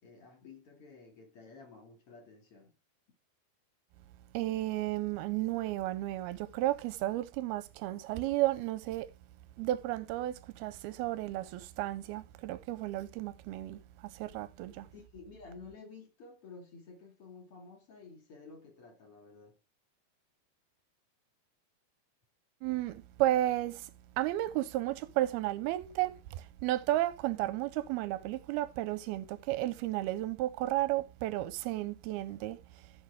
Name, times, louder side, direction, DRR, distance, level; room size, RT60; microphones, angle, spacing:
voice 1, 0.0-2.7 14.9-19.6, left 4 dB, 40° left, 2.5 m, -52 dB
voice 2, 4.3-9.1 9.6-14.9 22.6-23.9 24.2-32.9, right 15 dB, 80° right, 2.4 m, -33 dB
15.0 x 6.4 x 3.5 m
omnidirectional pair, 4.7 m